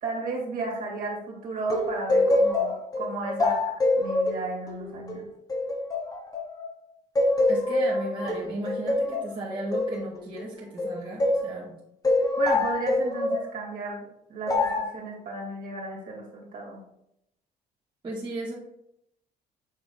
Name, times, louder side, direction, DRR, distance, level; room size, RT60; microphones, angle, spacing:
voice 1, 0.0-3.6 4.0-5.3 12.4-16.8, right 3 dB, 55° right, -2 dB, 2.3 m, -34 dB
sound 1, 1.7-6.7 7.2-11.5 12.0-13.5 14.5-14.9, left 2 dB, 20° left, 1.1 m, -25 dB
voice 2, 7.5-11.8 18.0-18.5, right 2 dB, 30° right, -6 dB, 1.8 m, -35 dB
7.1 x 3.6 x 3.8 m, 0.79 s
cardioid pair, 110°, 17 cm